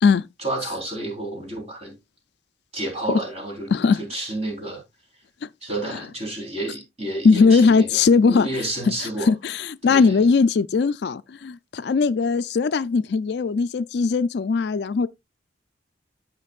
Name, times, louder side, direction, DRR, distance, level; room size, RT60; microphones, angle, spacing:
voice 1, 0.4-2.0 2.7-3.7 4.0-4.8 5.6-9.3 9.8-10.2, right 1 dB, 35° right, 3.8 m, -30 dB
voice 2, 7.2-8.5 9.3-15.1, left 4 dB, 60° left, 0.4 m, -19 dB
13.5 x 5.2 x 2.4 m
head